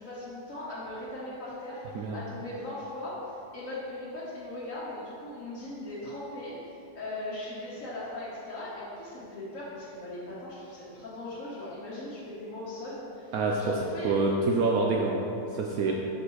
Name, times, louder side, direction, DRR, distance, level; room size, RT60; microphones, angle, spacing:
voice 1, 0.0-3.2 3.5-14.5 15.8-15.9, left 1 dB, 50° left, -9 dB, 1.4 m, -39 dB
voice 2, 13.3-13.7 14.0-15.9, right 3 dB, 70° right, -1 dB, 0.9 m, -27 dB
7.2 x 6.6 x 3.1 m, 2.7 s
omnidirectional pair, 2.0 m